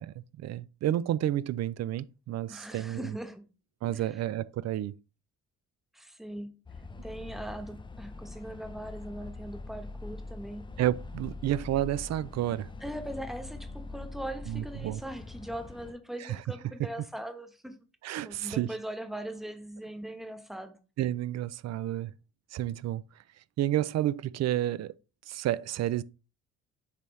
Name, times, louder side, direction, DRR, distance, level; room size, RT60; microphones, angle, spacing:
voice 1, 0.0-3.1 3.8-5.0 10.8-12.7 14.5-15.0 16.2-16.4 18.0-18.7 21.0-22.1 22.5-23.0 23.6-24.9 25.3-26.0, right 13 dB, 60° right, 0.4 m, -30 dB
voice 2, 2.5-3.5 3.9-4.2 5.9-6.6 7.0-10.7 12.8-17.8 18.2-20.8, right 1 dB, ahead, 1.1 m, -40 dB
sound 1, 6.7-15.9, left 3 dB, 15° left, 0.5 m, -43 dB
7.0 x 4.2 x 3.2 m
cardioid pair, 90°, 30 cm